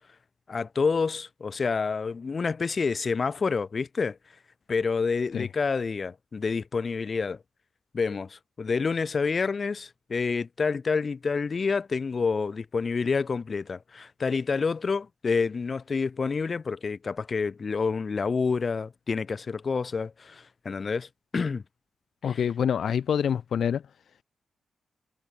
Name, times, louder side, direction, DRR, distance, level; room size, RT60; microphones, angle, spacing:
voice 1, 0.5-4.2 4.7-7.4 7.9-21.6 22.3-22.4, left 5 dB, 50° left, 6.0 m, -28 dB
voice 2, 22.2-23.8, left 8 dB, 70° left, 5.3 m, -26 dB
supercardioid pair, 50°, 0 cm